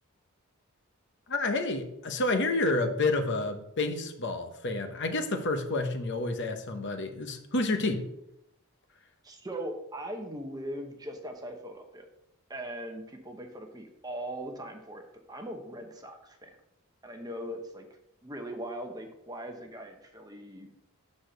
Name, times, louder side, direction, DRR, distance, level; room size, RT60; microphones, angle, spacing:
voice 1, 1.3-8.1, left 2 dB, 55° left, 6 dB, 0.9 m, -29 dB
voice 2, 9.2-12.1 12.5-15.0 15.3-16.6 17.0-17.9 18.2-20.9, right 1 dB, 20° right, 4 dB, 0.9 m, -40 dB
6.7 x 4.3 x 6.6 m, 0.80 s
head